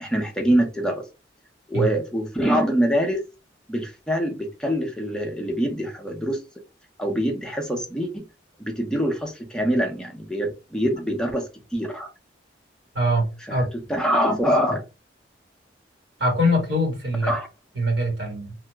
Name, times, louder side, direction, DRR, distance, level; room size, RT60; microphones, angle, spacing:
voice 1, 0.0-1.0 1.7-3.2 3.7-6.4 7.0-8.2 8.6-12.1 13.5-14.8 17.2-17.5, equal, 5° left, 0.6 m, -24 dB
voice 2, 12.9-13.7 16.2-17.3 17.8-18.5, equal, 75° right, 1.8 m, -23 dB
2.9 x 2.1 x 3.4 m
head